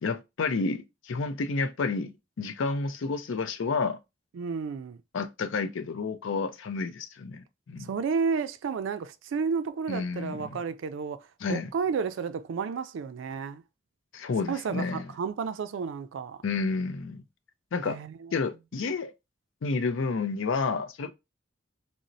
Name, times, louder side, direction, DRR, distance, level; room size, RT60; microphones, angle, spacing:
voice 1, 0.0-4.0 5.1-7.9 9.9-10.6 11.4-11.7 14.1-15.1 16.4-17.2 17.7-18.0 18.3-19.1 19.6-21.1, left 4 dB, 80° left, 0.4 m, -30 dB
voice 2, 4.3-5.0 7.8-13.6 14.5-16.4 17.8-18.4, right 5 dB, 75° right, 0.3 m, -32 dB
4.0 x 2.0 x 2.5 m
head